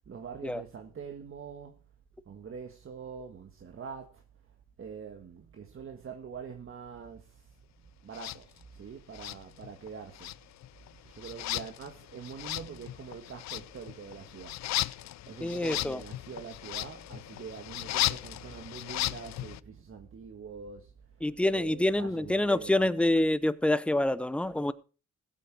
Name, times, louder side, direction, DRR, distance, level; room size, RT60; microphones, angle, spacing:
voice 1, 0.1-1.8 2.2-4.2 4.8-7.6 8.0-10.3 10.9-22.9, right 6 dB, 45° right, 1.7 m, -44 dB
sound 1, 8.1-8.4 9.1-9.9 10.1-19.6, left 15 dB, 65° left, 0.5 m, -36 dB
voice 2, 15.4-16.0 21.2-24.7, left 1 dB, 5° left, 0.7 m, -27 dB
15.5 x 8.4 x 4.7 m
cardioid pair, 90°, 30 cm